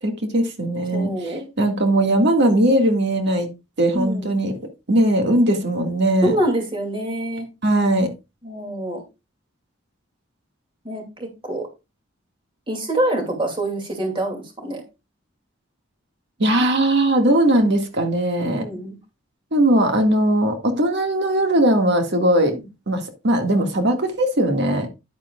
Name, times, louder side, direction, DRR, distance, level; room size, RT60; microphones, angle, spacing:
voice 1, 0.0-1.3 1.6-3.5 3.8-4.6 4.9-6.4 7.6-8.1 16.4-18.7 19.5-22.6 22.9-24.9, right 1 dB, 60° right, 2.0 m, -19 dB
voice 2, 0.9-1.5 3.9-4.2 6.2-7.5 8.4-9.0 10.8-11.7 12.7-14.8 18.4-19.0, right 1 dB, 25° right, 2.6 m, -25 dB
10.5 x 8.8 x 2.4 m
head